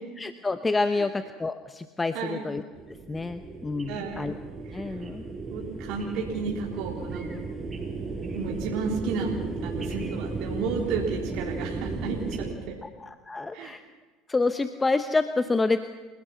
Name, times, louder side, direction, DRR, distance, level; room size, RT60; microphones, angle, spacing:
voice 1, 0.2-2.6 3.1-4.3 4.7-5.3 12.8-13.8 14.3-15.8, left 3 dB, 20° left, 9 dB, 1.0 m, -28 dB
sound 1, 2.7-12.5, right 3 dB, 20° right, 6.0 m, -35 dB
voice 2, 3.9-4.3 4.7-4.9 5.5-7.2 8.3-9.3 9.6-12.8 13.5-13.7, right 5 dB, 65° right, -1 dB, 3.5 m, -32 dB
30.0 x 18.0 x 5.9 m, 1.3 s
hypercardioid pair, 80°, 0 cm